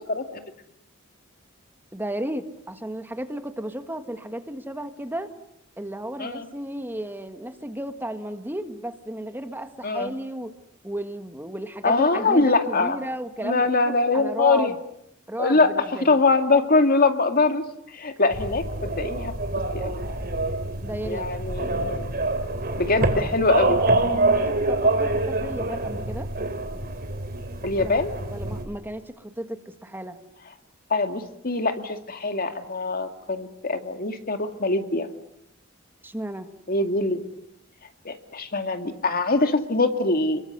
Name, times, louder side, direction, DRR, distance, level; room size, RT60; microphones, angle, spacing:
voice 1, 0.1-0.4 6.2-6.5 9.8-10.1 11.8-13.0 13.4-14.7 15.4-15.7 16.0-17.6 17.9-19.3 19.7-20.0 21.0-22.1 22.8-23.8 27.6-28.1 30.9-35.1 36.7-37.2 38.0-40.4, left 3 dB, 45° left, 7 dB, 2.3 m, -23 dB
voice 2, 1.9-5.3 5.8-10.5 10.8-14.8 15.3-16.2 20.8-21.2 23.0-23.1 24.7-26.3 27.8-28.0 28.3-30.2 36.0-36.5, right 1 dB, 10° right, 8 dB, 1.6 m, -34 dB
sound 1, 18.3-28.6, right 2 dB, 50° right, 2.9 m, -26 dB
30.0 x 22.5 x 8.1 m, 0.76 s
head